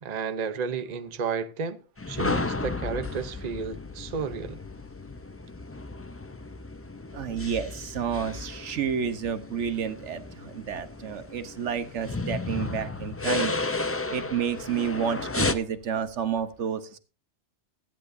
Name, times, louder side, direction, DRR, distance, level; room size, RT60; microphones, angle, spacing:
voice 1, 0.0-1.8 2.1-4.6, right 6 dB, 40° right, 0.8 m, -32 dB
sound 1, 2.0-15.5, left 3 dB, 20° left, 0.3 m, -33 dB
voice 2, 7.1-13.5 14.1-17.0, right 7 dB, 85° right, 1.3 m, -30 dB
16.5 x 13.0 x 2.6 m
omnidirectional pair, 1.2 m